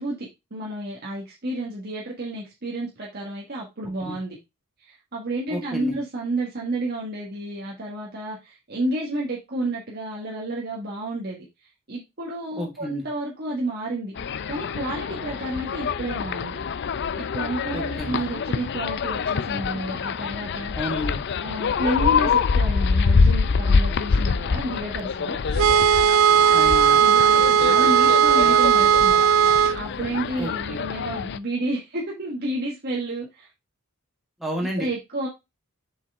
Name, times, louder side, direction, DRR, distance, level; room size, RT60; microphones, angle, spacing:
voice 1, 0.0-4.4 4.8-14.1 14.5-20.7 21.4-25.4 27.0-29.2 29.7-33.5 34.8-35.3, right 1 dB, 45° right, -3 dB, 1.6 m, -31 dB
voice 2, 5.5-5.9 12.5-13.0 17.7-18.2 20.7-21.2 26.5-27.0 30.4-30.8 34.4-34.9, left 1 dB, ahead, -2 dB, 1.8 m, -31 dB
sound 1, 14.2-31.4, left 5 dB, 50° left, 0.4 m, -25 dB
sound 2, 25.6-29.8, right 8 dB, 65° right, 0.4 m, -17 dB
7.0 x 5.6 x 3.6 m, 0.23 s
head